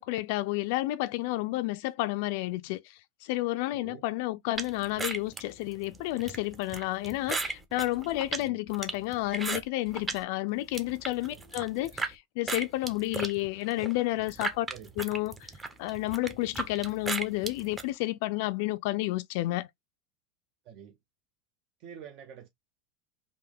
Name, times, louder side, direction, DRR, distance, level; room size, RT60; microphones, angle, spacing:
voice 1, 0.0-14.7 15.0-15.5 15.8-19.7, left 18 dB, 65° left, 0.3 m, -31 dB
voice 2, 3.7-4.0 8.5-8.6 11.3-11.4 14.7-14.9 20.6-21.0 21.8-22.5, right 8 dB, 55° right, 0.6 m, -47 dB
sound 1, 4.6-10.2 10.6-12.1 12.5-17.9, right 3 dB, 15° right, 0.7 m, -36 dB
3.5 x 2.6 x 3.3 m
supercardioid pair, 125°, 0 cm